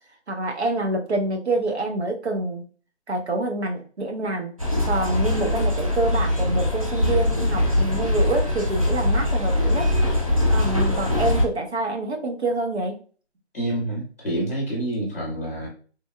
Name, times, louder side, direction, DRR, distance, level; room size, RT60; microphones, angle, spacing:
voice 1, 0.3-2.6 3.1-4.5 4.9-9.9 10.5-12.9, right 2 dB, 70° right, 2 dB, 1.0 m, -26 dB
sound 1, 4.6-11.5, left 1 dB, 30° right, 0.5 m, -22 dB
voice 2, 13.5-15.7, right 1 dB, 15° left, -4 dB, 0.8 m, -27 dB
3.4 x 2.4 x 2.2 m, 0.39 s
figure-of-eight pair, 170°, 34 cm